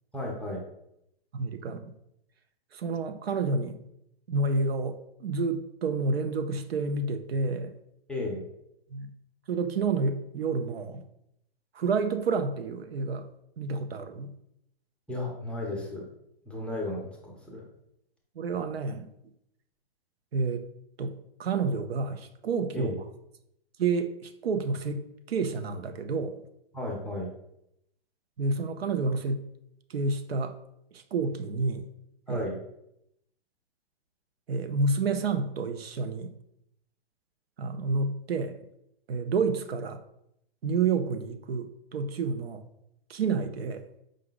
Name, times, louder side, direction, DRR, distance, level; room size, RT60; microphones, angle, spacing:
voice 1, 0.1-0.6 8.1-8.4 15.1-16.1 16.5-17.7 22.7-23.0 26.7-27.3 32.3-32.6, left 1 dB, 5° left, -2 dB, 0.5 m, -34 dB
voice 2, 1.3-1.8 2.7-3.8 4.3-7.7 8.9-9.1 9.5-11.0 11.7-13.2 13.6-14.3 18.4-19.1 20.3-20.7 21.0-21.1 21.4-22.9 23.8-26.4 28.4-29.4 29.9-30.6 30.9-31.9 32.3-32.4 34.5-36.3 37.6-38.6 39.1-40.0 40.6-42.6 43.1-43.8, right 4 dB, 90° right, 8 dB, 0.6 m, -29 dB
4.9 x 2.2 x 3.8 m, 0.79 s
hypercardioid pair, 130°, 29 cm